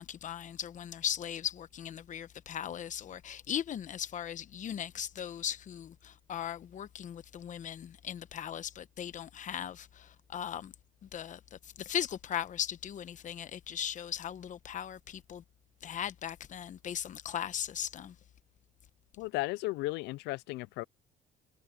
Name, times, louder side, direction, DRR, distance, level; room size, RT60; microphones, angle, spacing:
voice 1, 0.0-10.7 11.1-15.4 15.8-18.1, left 9 dB, 50° left, 1.0 m, -38 dB
voice 2, 19.2-20.8, left 21 dB, 90° left, 0.4 m, -35 dB
cardioid pair, 110°, 17 cm